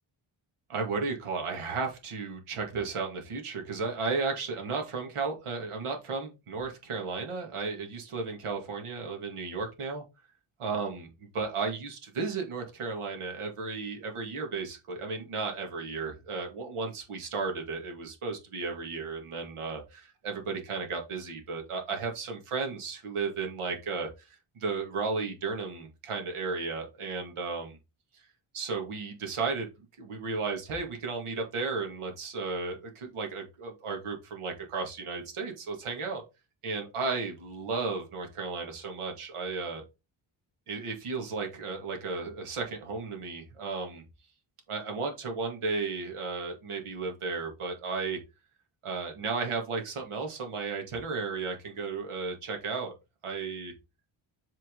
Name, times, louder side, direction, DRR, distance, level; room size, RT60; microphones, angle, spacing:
voice 1, 0.7-10.0 10.6-11.1 11.3-27.8 28.5-29.7 30.0-36.2 36.6-39.8 40.7-44.0 44.7-48.2 48.8-52.9 53.2-53.7, right 4 dB, 85° right, 2 dB, 2.4 m, -34 dB
7.8 x 4.6 x 3.9 m, 0.26 s
wide cardioid pair, 150°, 49 cm